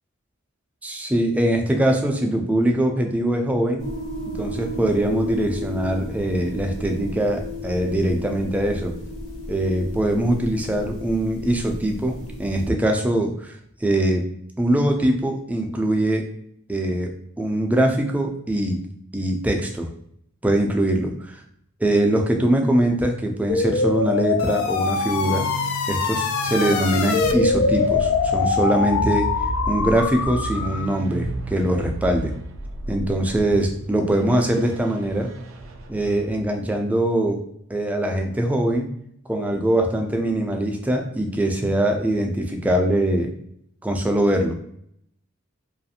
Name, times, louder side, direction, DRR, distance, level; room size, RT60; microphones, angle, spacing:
voice 1, 0.8-3.9 4.3-8.9 9.5-13.5 13.8-14.2 14.6-16.3 16.7-18.8 19.1-19.9 20.4-21.4 21.8-25.5 25.9-29.3 29.7-32.3 32.9-35.3 35.9-37.4 37.7-38.9 39.3-43.3 43.8-44.6, right 1 dB, 5° right, 2 dB, 0.3 m, -22 dB
sound 1, 3.8-12.7, left 1 dB, 55° left, 1.3 m, -34 dB
sound 2, 23.5-31.0, left 5 dB, 80° left, 0.3 m, -23 dB
sound 3, 24.6-36.5, right 2 dB, 75° right, 0.4 m, -33 dB
2.4 x 2.4 x 2.7 m, 0.70 s
head